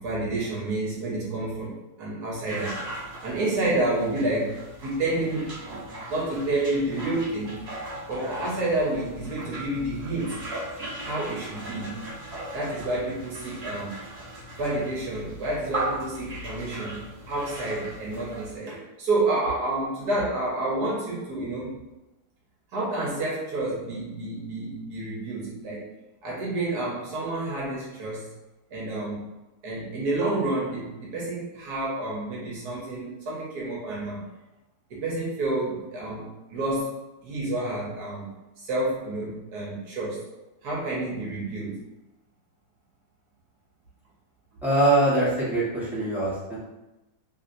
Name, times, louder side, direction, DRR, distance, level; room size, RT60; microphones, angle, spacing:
voice 1, 0.0-2.8 3.2-5.8 6.1-7.6 8.1-10.4 11.0-12.0 12.5-13.9 14.6-21.8 22.7-25.9 26.2-28.3 28.7-29.2 29.6-34.2 34.9-36.9 37.2-40.3 40.6-41.8, right 2 dB, 70° right, -5 dB, 1.3 m, -29 dB
sound 1, 2.5-18.6, right 1 dB, 45° right, 1.0 m, -38 dB
voice 2, 44.6-46.6, right 1 dB, ahead, -10 dB, 1.0 m, -23 dB
3.2 x 2.7 x 2.5 m, 1.0 s
omnidirectional pair, 1.8 m